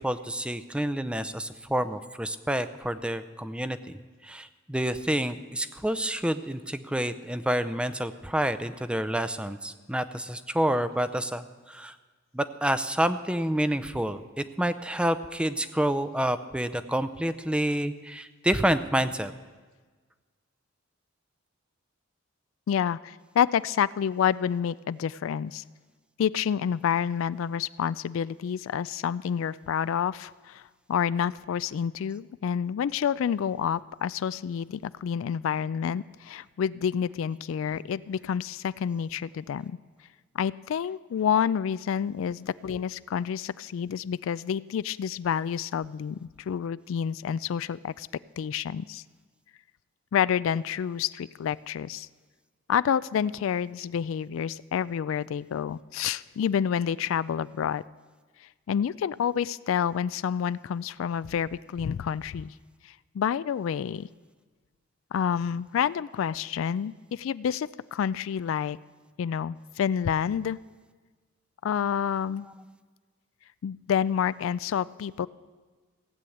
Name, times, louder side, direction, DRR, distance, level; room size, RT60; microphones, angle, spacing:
voice 1, 0.0-11.9 12.3-19.3, right 1 dB, 5° right, 11 dB, 0.5 m, -28 dB
voice 2, 22.7-25.6 26.2-39.8 40.3-48.1 48.4-49.0 50.1-52.1 52.7-57.8 58.4-62.5 62.8-64.1 65.1-68.8 69.2-70.6 71.6-72.5 73.6-75.3, left 8 dB, 70° left, 18 dB, 0.3 m, -28 dB
16.0 x 8.5 x 7.9 m, 1.4 s
head